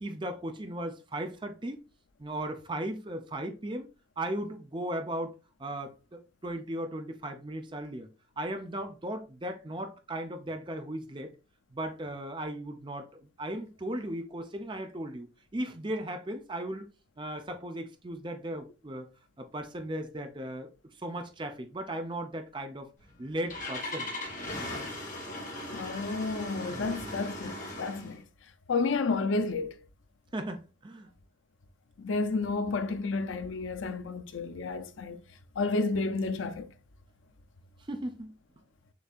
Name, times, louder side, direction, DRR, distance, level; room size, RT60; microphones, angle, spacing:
voice 1, 0.0-1.8 2.2-3.9 4.2-5.3 5.6-8.1 8.4-11.3 11.7-15.3 15.5-16.9 17.2-19.1 19.4-20.7 21.0-22.9 23.2-24.1 26.7-27.2 30.3-31.1 37.9-38.3, right 1 dB, 25° right, 0.5 m, -37 dB
Engine starting, 23.0-28.2, left 1 dB, 40° left, 1.4 m, -38 dB
voice 2, 25.7-28.2 28.7-29.7 32.0-35.2 35.6-36.7, left 3 dB, 85° left, 0.5 m, -31 dB
6.8 x 2.7 x 2.4 m
head